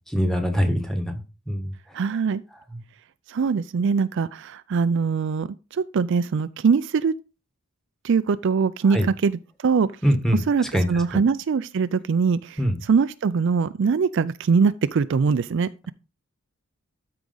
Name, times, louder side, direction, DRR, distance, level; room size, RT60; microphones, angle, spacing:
voice 1, 0.1-1.0 1.5-1.7 8.9-9.1 10.0-10.4 10.7-10.9 12.6-12.7, equal, ahead, 1.3 m, -22 dB
voice 2, 1.9-2.4 3.3-7.1 8.0-9.9 10.3-15.9, right 5 dB, 55° right, 0.4 m, -22 dB
13.0 x 4.9 x 4.0 m
head